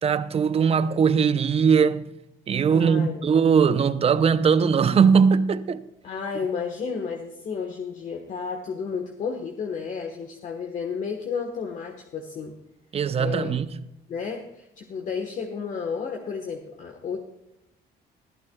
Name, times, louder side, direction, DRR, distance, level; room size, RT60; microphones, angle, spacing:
voice 1, 0.0-2.1 2.5-5.8 12.9-13.7, right 6 dB, 35° right, 0.6 m, -20 dB
voice 2, 2.7-3.3 6.0-12.5 13.2-13.5 14.1-17.2, left 5 dB, 50° left, 1.3 m, -32 dB
21.0 x 11.5 x 2.3 m
cardioid pair, 110°, 17 cm